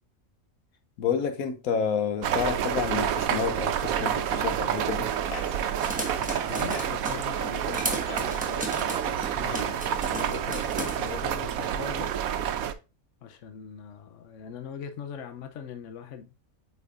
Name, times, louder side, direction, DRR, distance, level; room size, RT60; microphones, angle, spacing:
voice 1, 1.0-5.1, left 7 dB, 80° left, 1.3 m, -29 dB
sound 1, 2.2-12.7, right 9 dB, 85° right, 1.1 m, -29 dB
sound 2, 4.1-11.3, left 3 dB, 35° left, 0.7 m, -45 dB
sound 3, 5.8-7.2 7.7-11.0, right 1 dB, 5° right, 0.9 m, -35 dB
voice 2, 6.5-12.1 13.2-16.3, left 7 dB, 65° left, 1.0 m, -41 dB
8.2 x 4.7 x 2.5 m
omnidirectional pair, 1.5 m